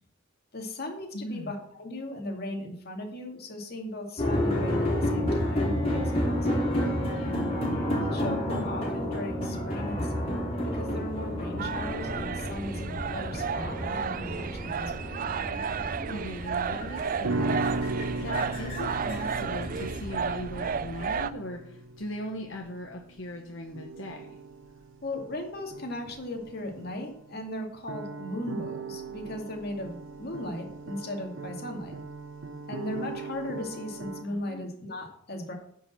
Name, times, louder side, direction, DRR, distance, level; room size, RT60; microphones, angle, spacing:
voice 1, 0.5-6.8 7.8-15.0 25.0-32.0 32.7-35.5, left 1 dB, 55° left, 2 dB, 2.3 m, -37 dB
voice 2, 1.1-1.6 7.0-7.7 16.1-24.4 34.3-34.7, left 1 dB, 80° left, 1 dB, 1.3 m, -39 dB
sound 1, 4.2-20.0, left 1 dB, 30° left, 3.9 m, -31 dB
sound 2, 11.6-21.3, right 6 dB, 45° right, 0.4 m, -33 dB
sound 3, 17.2-27.6 27.9-34.2, right 3 dB, 80° right, 0.9 m, -38 dB
10.0 x 5.4 x 7.2 m, 0.68 s
head